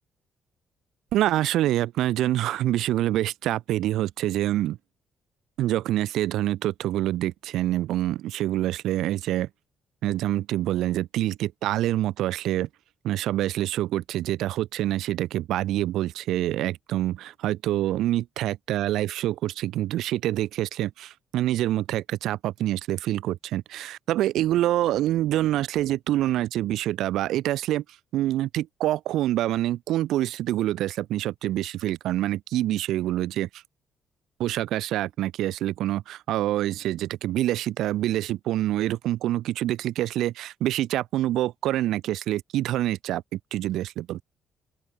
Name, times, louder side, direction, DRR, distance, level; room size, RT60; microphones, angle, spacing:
voice 1, 1.1-4.8 5.6-9.5 10.0-12.7 13.0-27.8 28.1-33.6 34.4-44.2, right 14 dB, 85° right, 0.7 m, -26 dB
open air
cardioid pair, 165°, 0 cm